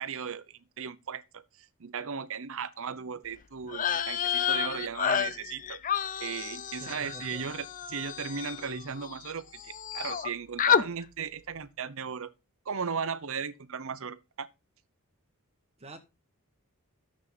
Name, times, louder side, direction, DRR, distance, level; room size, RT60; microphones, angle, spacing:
voice 1, 0.0-1.4 1.8-5.8 6.2-12.3 12.7-14.5, right 6 dB, 65° right, 0.8 m, -36 dB
sound 1, 3.7-9.3 9.6-10.3 10.6-10.9, left 8 dB, 35° left, 0.6 m, -30 dB
voice 2, 6.8-7.4 15.8-16.0, right 1 dB, 30° right, 1.4 m, -47 dB
12.5 x 7.5 x 4.1 m
head